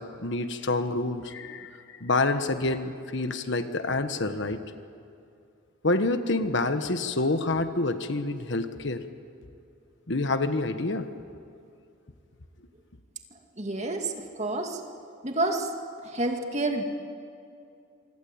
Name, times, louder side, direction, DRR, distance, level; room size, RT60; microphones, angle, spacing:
voice 1, 0.0-4.6 5.8-9.0 10.1-11.1, left 2 dB, 55° left, 9 dB, 1.3 m, -27 dB
voice 2, 13.6-14.8 15.2-15.7 16.0-16.8, right 2 dB, 30° right, 3 dB, 2.4 m, -29 dB
27.0 x 25.0 x 8.8 m, 2.5 s
head